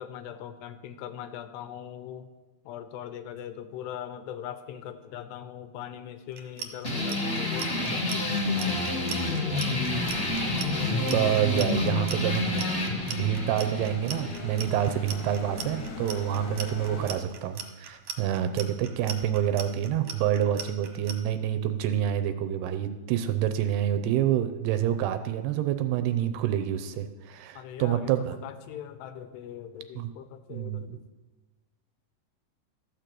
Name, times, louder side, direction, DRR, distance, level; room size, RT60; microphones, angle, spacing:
voice 1, 0.0-2.3 2.7-9.7 10.6-11.8 16.4-16.6 27.6-31.0, left 9 dB, 80° left, 10 dB, 2.8 m, -41 dB
Clock, 6.3-21.1, right 8 dB, 65° right, 1.9 m, -38 dB
sound 1, 6.8-15.9, left 2 dB, 30° left, 1.2 m, -29 dB
sound 2, 9.8-17.2, left 3 dB, 60° left, 2.6 m, -41 dB
voice 2, 11.0-12.7 13.1-28.4 30.0-30.1 30.5-31.0, right 11 dB, 80° right, 9 dB, 2.6 m, -27 dB
13.5 x 6.8 x 7.6 m, 1.2 s
omnidirectional pair, 4.9 m